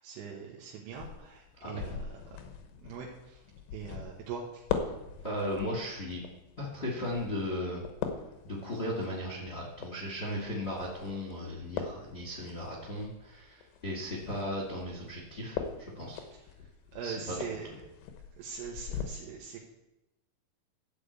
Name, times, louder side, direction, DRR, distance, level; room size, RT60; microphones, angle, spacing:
voice 1, 0.0-2.0 2.8-3.4 3.7-4.6 17.0-17.7 18.4-19.6, right 6 dB, 90° right, -3 dB, 3.5 m, -41 dB
sound 1, 0.9-19.0, left 7 dB, 85° left, 3.2 m, -42 dB
voice 2, 5.2-6.2 6.6-7.8 8.4-16.2 17.0-17.3, left 1 dB, 25° left, -3 dB, 1.5 m, -36 dB
13.5 x 5.0 x 8.2 m, 0.95 s
omnidirectional pair, 4.7 m